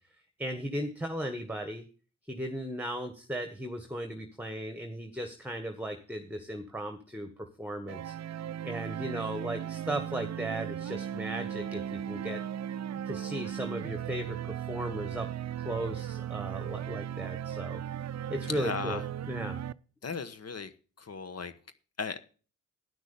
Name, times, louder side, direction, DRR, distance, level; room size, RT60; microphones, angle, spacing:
voice 1, 0.4-1.9 2.3-7.3 7.6-8.1 8.6-12.4 13.1-15.3 15.6-17.8 18.3-19.0 19.3-19.6, right 1 dB, 5° right, 7 dB, 1.4 m, -36 dB
sound 1, 7.9-19.7, right 10 dB, 55° right, 0.5 m, -37 dB
voice 2, 18.4-19.1 20.0-20.7 21.0-21.5 22.0-22.2, left 5 dB, 50° left, 11 dB, 1.1 m, -36 dB
11.0 x 6.2 x 7.0 m, 0.38 s
cardioid pair, 55°, 32 cm